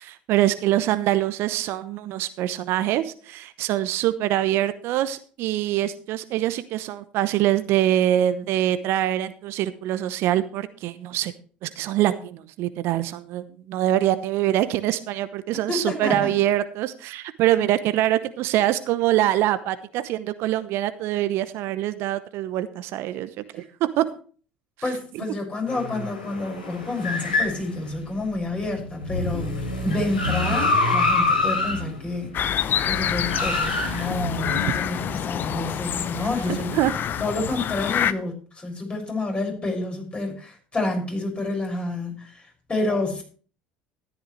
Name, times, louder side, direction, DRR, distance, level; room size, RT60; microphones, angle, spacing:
voice 1, 0.0-11.3 11.6-24.1 36.7-36.9, right 13 dB, 55° right, 13 dB, 0.8 m, -24 dB
voice 2, 15.7-16.3 23.5-23.6 24.8-36.7 37.2-42.4 42.7-43.2, left 2 dB, 20° left, 2 dB, 6.6 m, -29 dB
sound 1, 25.7-35.6 36.7-37.5, left 3 dB, 80° left, 4.7 m, -27 dB
sound 2, 32.3-38.1, left 9 dB, 45° left, 0.7 m, -27 dB
14.0 x 11.5 x 3.3 m, 0.40 s
figure-of-eight pair, 65°, 5 cm